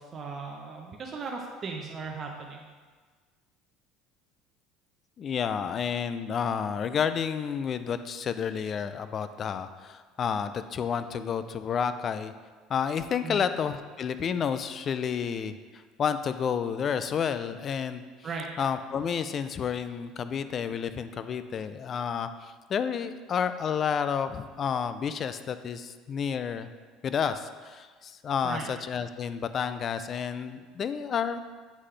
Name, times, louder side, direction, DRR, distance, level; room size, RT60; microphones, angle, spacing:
voice 1, 0.0-2.6 13.2-13.5 18.2-18.5 28.4-28.7, right 4 dB, 30° right, 0 dB, 0.6 m, -37 dB
voice 2, 5.2-12.3 12.7-15.6 16.0-18.0 18.6-26.7 27.0-31.4, left 7 dB, 35° left, 11 dB, 0.3 m, -30 dB
8.2 x 3.8 x 3.2 m, 1.5 s
cardioid pair, 130°, 0 cm